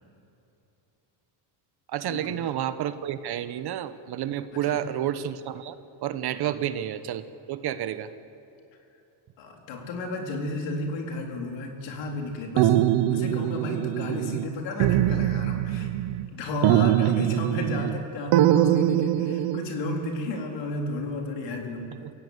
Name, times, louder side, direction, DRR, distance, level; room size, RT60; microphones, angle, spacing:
voice 1, 1.9-5.7 6.0-8.1 16.7-16.8 22.0-22.1, right 11 dB, 55° right, 12 dB, 1.2 m, -30 dB
voice 2, 9.4-15.9 16.3-21.9, left 2 dB, 70° left, 1 dB, 4.2 m, -33 dB
sound 1, 12.6-14.5 14.8-16.3 16.6-18.0 18.3-19.7, right 12 dB, 80° right, 1.0 m, -23 dB
28.0 x 16.5 x 8.2 m, 2.9 s
cardioid pair, 130°, 46 cm